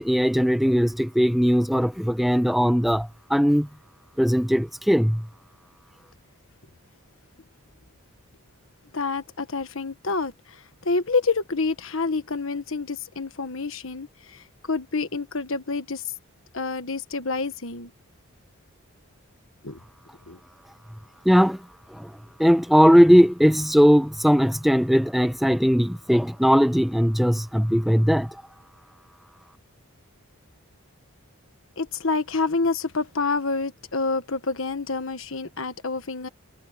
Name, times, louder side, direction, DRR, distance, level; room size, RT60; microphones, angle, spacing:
voice 1, 0.0-3.7 4.2-5.2 21.2-21.6 22.0-22.1 22.4-28.3, equal, ahead, 0.9 m, -19 dB
voice 2, 8.9-16.0 16.5-17.9 19.6-19.8 20.3-20.4 31.8-36.3, left 3 dB, 60° left, 1.4 m, -28 dB
head